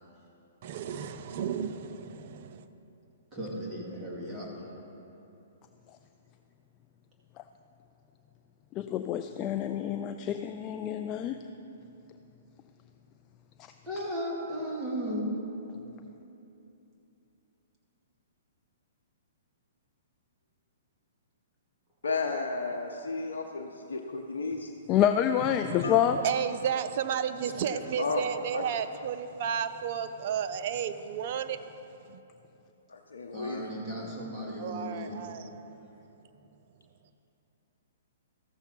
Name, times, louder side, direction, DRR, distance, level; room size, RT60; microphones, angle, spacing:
voice 1, 0.6-2.6 25.4-31.8 32.1-32.2 34.6-35.8, right 8 dB, 50° right, 10 dB, 0.6 m, -33 dB
voice 2, 3.3-4.7 13.9-15.3 33.3-35.1, equal, 20° right, -4 dB, 2.5 m, -36 dB
voice 3, 8.8-11.4 24.9-26.2, left 10 dB, 30° left, 7 dB, 0.4 m, -27 dB
voice 4, 22.0-24.7 25.8-26.0 28.0-28.2 28.5-28.6 32.9-33.6, left 4 dB, 80° left, 2 dB, 0.7 m, -33 dB
14.0 x 6.8 x 4.5 m, 2.9 s
hypercardioid pair, 125°, 0 cm